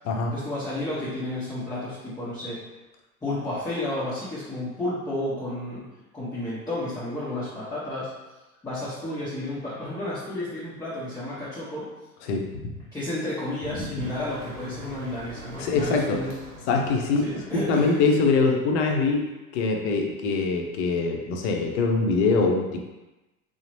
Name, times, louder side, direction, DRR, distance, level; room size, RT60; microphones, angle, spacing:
voice 1, 0.3-2.6 3.2-5.9 6.1-8.1 8.6-11.9 12.9-16.4 17.2-18.0, left 1 dB, 5° left, -10 dB, 0.7 m, -32 dB
voice 2, 12.2-12.7 13.7-13.9 15.6-16.2 16.7-19.3 19.5-22.8, left 4 dB, 50° left, 2 dB, 0.6 m, -23 dB
Motor vehicle (road), 14.0-18.9, equal, 40° right, 1.0 m, -43 dB
3.7 x 2.0 x 3.0 m, 1.1 s
figure-of-eight pair, 85°, 46 cm